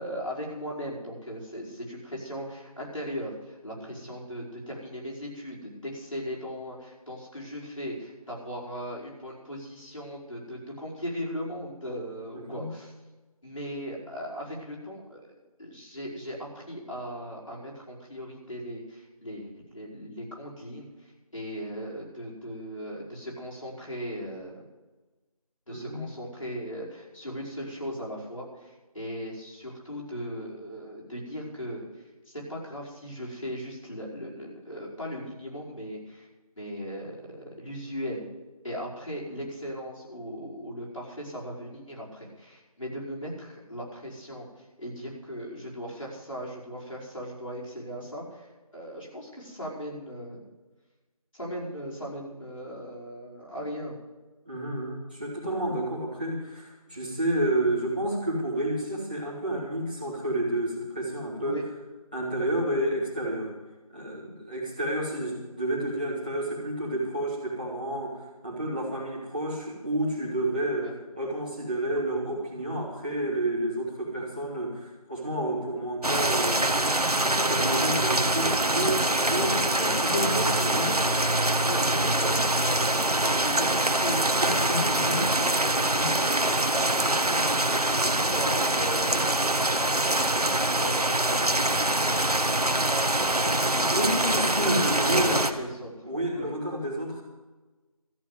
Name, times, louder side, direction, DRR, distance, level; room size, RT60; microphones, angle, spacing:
voice 1, 0.0-12.9 13.4-24.6 25.7-31.9 32.3-36.3 36.6-38.2 38.6-44.5 44.8-50.4 51.3-54.0 56.9-57.0 61.4-61.6 70.8-70.9 79.8-81.3 81.6-86.0 86.4-94.5 94.7-95.9 96.3-96.5, equal, 60° left, -5 dB, 5.3 m, -38 dB
voice 2, 12.3-12.7 25.7-26.0 54.4-61.6 62.1-63.5 63.9-76.6 77.3-80.9 84.4-85.2 86.0-86.1 93.9-95.5 96.0-97.2, right 1 dB, 15° right, -8 dB, 2.2 m, -30 dB
sound 1, 76.0-95.5, right 1 dB, 90° right, 1.2 m, -24 dB
13.5 x 7.2 x 9.7 m, 1.2 s
figure-of-eight pair, 180°, 19 cm